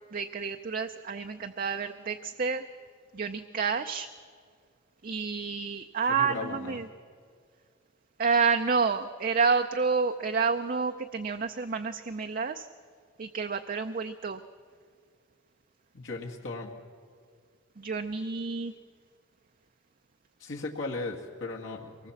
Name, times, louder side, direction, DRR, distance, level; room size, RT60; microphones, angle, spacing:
voice 1, 0.1-2.6 3.1-4.1 5.0-6.9 8.2-12.7 13.2-14.4 17.8-18.7, right 5 dB, 45° right, 6 dB, 0.5 m, -29 dB
voice 2, 6.1-6.8 15.9-16.7 20.4-22.1, left 3 dB, 70° left, -1 dB, 1.8 m, -37 dB
23.5 x 19.0 x 7.2 m, 2.1 s
head